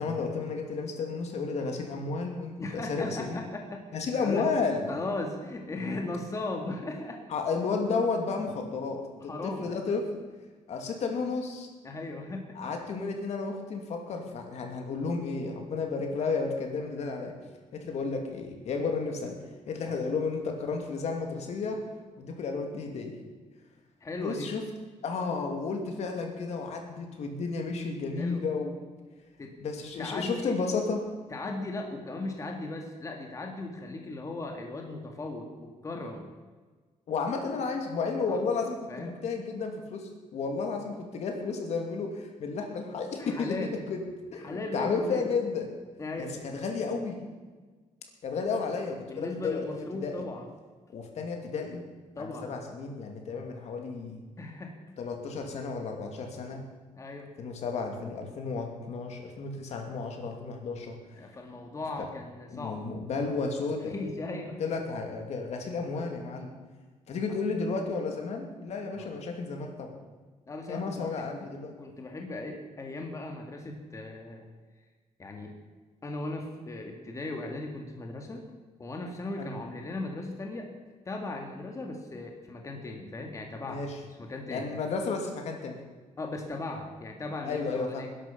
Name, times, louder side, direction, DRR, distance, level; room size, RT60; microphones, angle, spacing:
voice 1, 0.0-3.4 3.9-4.9 7.3-10.0 10.7-11.7 12.6-17.4 17.7-19.4 19.7-21.8 22.2-23.2 24.2-24.6 25.0-28.7 29.6-31.1 37.1-44.0 44.3-45.7 46.2-47.2 48.2-50.2 50.9-51.9 52.2-54.3 55.0-56.6 57.4-61.0 62.0-62.1 62.5-63.9 64.6-66.5 67.1-70.0 70.7-71.8 79.4-79.5 83.7-84.0 84.5-85.8 87.4-88.1, left 4 dB, 60° left, 3 dB, 2.7 m, -32 dB
voice 2, 2.6-4.5 4.9-7.2 9.2-9.7 11.8-12.6 19.8-19.9 24.0-24.5 28.2-28.4 29.4-29.5 30.0-30.6 31.3-36.3 38.3-38.4 38.9-39.2 43.2-43.7 44.4-45.3 46.0-46.4 49.1-50.5 52.2-52.5 54.4-54.8 57.0-57.3 61.2-62.8 63.9-64.6 68.9-69.1 70.5-71.2 71.8-74.5 75.2-75.5 76.0-78.4 78.8-80.7 81.1-83.8 84.2-84.7 86.2-88.1, left 2 dB, 25° left, 2 dB, 2.0 m, -37 dB
20.5 x 11.5 x 5.7 m, 1.4 s
cardioid pair, 145°, 13 cm